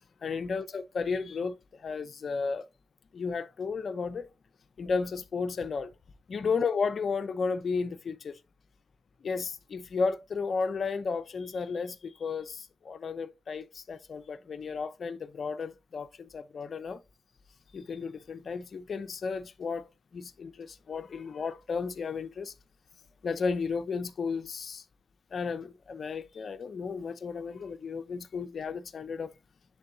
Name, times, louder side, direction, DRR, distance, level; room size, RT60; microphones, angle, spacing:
voice 1, 0.2-2.7 3.1-4.3 4.8-5.9 6.3-8.4 9.2-17.0 17.7-22.5 23.2-24.8 25.3-29.3, left 5 dB, 65° left, 0.7 m, -33 dB
11.0 x 3.8 x 2.7 m
cardioid pair, 55°, 0 cm